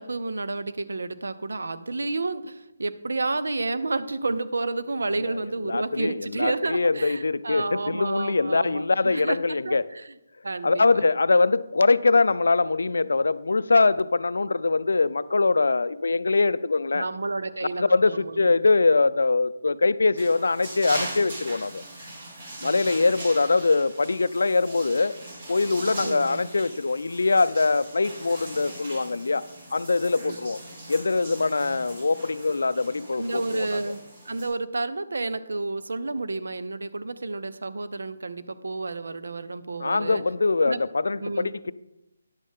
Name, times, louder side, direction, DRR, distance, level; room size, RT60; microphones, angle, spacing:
voice 1, 0.0-10.1 10.4-11.0 16.9-18.5 22.6-23.0 26.0-26.5 30.2-30.3 31.6-32.0 33.2-40.2 40.6-40.8 41.2-41.5, right 3 dB, 80° right, 12 dB, 0.7 m, -31 dB
voice 2, 5.2-9.8 10.6-17.0 17.8-21.8 22.6-25.2 25.5-29.4 29.7-30.6 30.9-33.8 39.8-41.7, left 3 dB, 75° left, 16 dB, 0.4 m, -23 dB
sound 1, 20.1-34.5, right 1 dB, 40° right, 3.7 m, -40 dB
10.5 x 8.5 x 3.6 m, 0.90 s
figure-of-eight pair, 155°, 0 cm